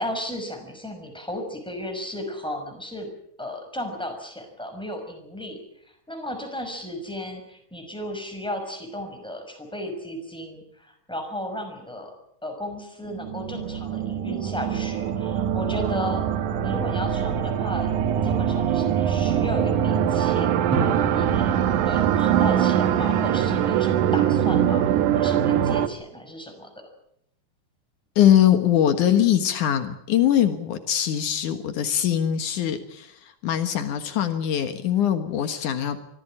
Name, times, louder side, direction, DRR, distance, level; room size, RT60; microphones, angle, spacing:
voice 1, 0.0-3.1 3.4-12.1 12.4-16.2 16.6-17.9 18.2-20.5 21.1-21.6 21.8-26.7, left 1 dB, ahead, 4 dB, 5.6 m, -34 dB
sound 1, 13.1-25.9, right 9 dB, 80° right, 2.6 m, -23 dB
Drum, 20.7-23.0, right 3 dB, 50° right, 4.3 m, -32 dB
voice 2, 28.2-33.1 33.4-36.0, left 10 dB, 80° left, 8 dB, 2.9 m, -22 dB
24.5 x 16.0 x 8.8 m, 0.74 s
omnidirectional pair, 3.5 m